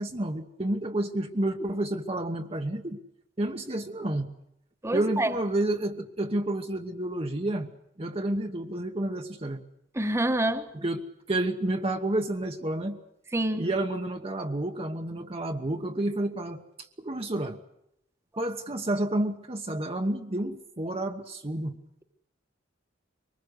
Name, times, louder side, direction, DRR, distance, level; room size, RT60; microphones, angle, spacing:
voice 1, 0.0-3.0 3.4-4.3 4.9-7.7 8.0-9.6 10.7-11.0 11.3-13.0 13.6-16.6 17.0-17.6 18.4-21.8, right 1 dB, 30° right, 3 dB, 1.1 m, -30 dB
voice 2, 4.8-5.3 9.9-10.7 13.3-13.7, right 1 dB, 15° right, 9 dB, 1.3 m, -26 dB
23.5 x 20.0 x 8.0 m, 0.79 s
head